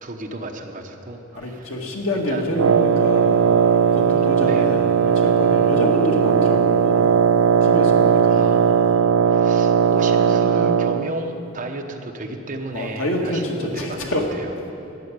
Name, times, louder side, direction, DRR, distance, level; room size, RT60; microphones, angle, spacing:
voice 1, 0.0-1.8 2.3-2.6 4.4-4.7 8.3-14.5, right 2 dB, 40° right, 3 dB, 1.1 m, -33 dB
voice 2, 1.4-3.4 3.9-7.0 7.6-8.6 12.7-14.3, left 1 dB, 80° left, 0 dB, 2.0 m, -27 dB
Wind instrument woodwind instrument, 2.4-6.8, equal, 60° left, 4.0 m, -46 dB
Wind instrument woodwind instrument 2, 2.5-11.1, right 7 dB, 80° right, 0.4 m, -17 dB
13.5 x 7.8 x 9.7 m, 2.8 s
head